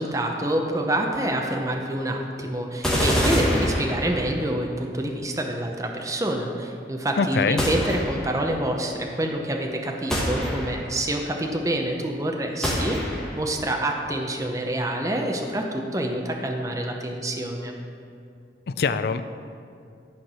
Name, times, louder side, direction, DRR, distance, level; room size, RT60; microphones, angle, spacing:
voice 1, 0.0-17.7, right 1 dB, 20° right, 2 dB, 0.7 m, -27 dB
sound 1, 2.8-4.5 7.6-8.5 10.1-11.0 12.6-13.5, equal, 5° left, 1.3 m, -25 dB
voice 2, 7.2-7.6 18.8-19.2, left 5 dB, 60° left, 11 dB, 0.4 m, -23 dB
11.5 x 4.5 x 6.2 m, 2.4 s
head